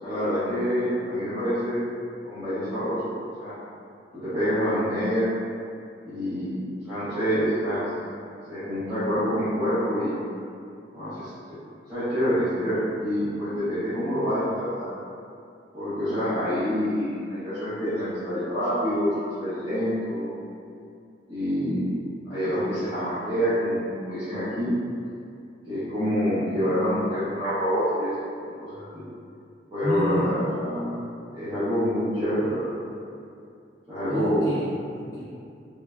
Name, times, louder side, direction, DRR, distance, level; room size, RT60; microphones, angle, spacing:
voice 1, 0.0-1.8 2.2-3.5 4.2-5.3 6.0-6.6 6.9-7.8 8.5-10.1 10.9-11.6 11.9-14.9 15.7-19.1 19.4-20.2 21.3-21.9 22.3-24.7 25.7-28.1 28.4-29.0 29.7-30.9 31.3-32.7 33.9-34.5, equal, 25° right, -17 dB, 0.7 m, -26 dB
voice 2, 29.8-30.3 34.1-35.2, equal, 15° left, -10 dB, 0.3 m, -30 dB
3.1 x 2.2 x 2.3 m, 2.4 s
head